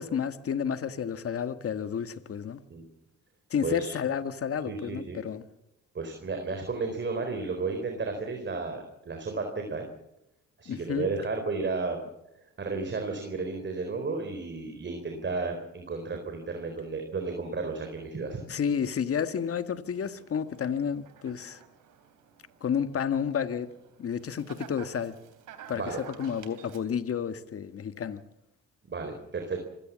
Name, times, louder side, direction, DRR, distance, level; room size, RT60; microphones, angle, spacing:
voice 1, 0.0-2.6 3.5-5.4 10.7-11.1 18.5-21.6 22.6-23.7 24.0-25.1 25.7-28.2, left 7 dB, 50° left, 1.6 m, -31 dB
voice 2, 3.6-3.9 4.7-5.2 5.9-9.9 10.6-12.0 12.6-18.4 25.7-26.0 28.8-29.6, right 4 dB, 40° right, 4.3 m, -33 dB
sound 1, 19.9-26.8, right 9 dB, 85° right, 3.3 m, -51 dB
26.0 x 17.0 x 7.5 m
cardioid pair, 90°, 30 cm